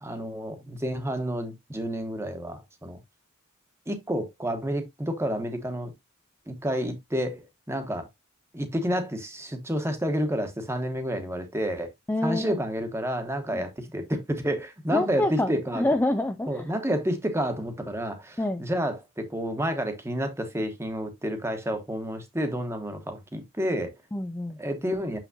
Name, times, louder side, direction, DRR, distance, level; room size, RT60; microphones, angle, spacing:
voice 1, 0.0-3.0 3.9-5.9 6.5-8.1 8.5-11.9 12.2-15.8 16.5-23.9 24.6-25.2, equal, 10° right, 1.2 m, -30 dB
voice 2, 12.1-12.6 13.5-13.6 14.9-16.6 18.4-18.6 24.1-24.6, left 1 dB, 10° left, 0.4 m, -27 dB
6.9 x 6.0 x 2.7 m
head